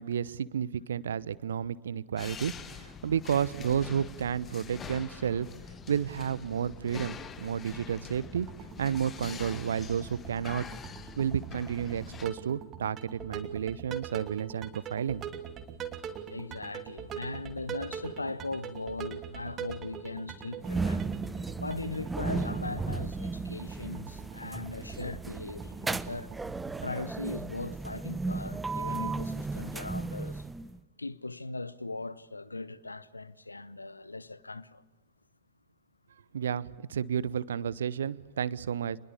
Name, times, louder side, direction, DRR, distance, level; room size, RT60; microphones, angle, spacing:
voice 1, 0.0-5.5 5.9-8.5 8.8-10.7 11.2-15.2 36.3-39.0, right 8 dB, 65° right, 0.8 m, -31 dB
sound 1, 2.2-12.3, left 6 dB, 20° left, 1.9 m, -45 dB
sound 2, 8.2-26.9, right 8 dB, 30° right, 2.9 m, -43 dB
voice 2, 16.3-21.1 21.6-26.3 26.8-30.5 31.0-34.8, left 3 dB, 80° left, 0.9 m, -39 dB
sound 3, 20.6-30.8, right 3 dB, 10° right, 1.0 m, -35 dB
27.0 x 21.5 x 8.5 m
figure-of-eight pair, 90°, 0 cm